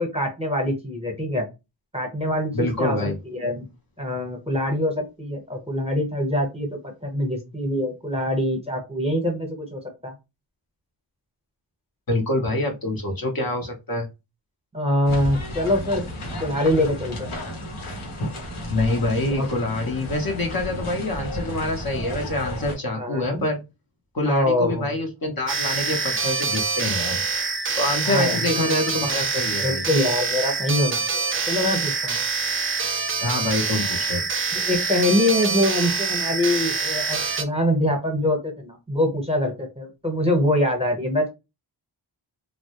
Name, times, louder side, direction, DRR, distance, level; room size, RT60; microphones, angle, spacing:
voice 1, 0.0-1.5 1.9-3.7 4.0-10.1 14.7-16.0 16.4-17.4 19.3-19.5 22.9-23.4 24.3-25.0 28.0-28.5 29.6-32.2 34.5-41.3, left 1 dB, 10° right, 2 dB, 0.9 m, -24 dB
voice 2, 2.5-3.2 12.1-14.1 18.7-23.6 24.1-27.2 27.8-29.8 33.2-34.2, left 2 dB, 45° left, 2 dB, 0.8 m, -26 dB
sound 1, 15.1-22.8, equal, 90° left, 0.9 m, -33 dB
sound 2, 25.5-37.4, right 4 dB, 30° right, 0.4 m, -25 dB
2.1 x 2.0 x 2.9 m, 0.25 s
cardioid pair, 50°, 49 cm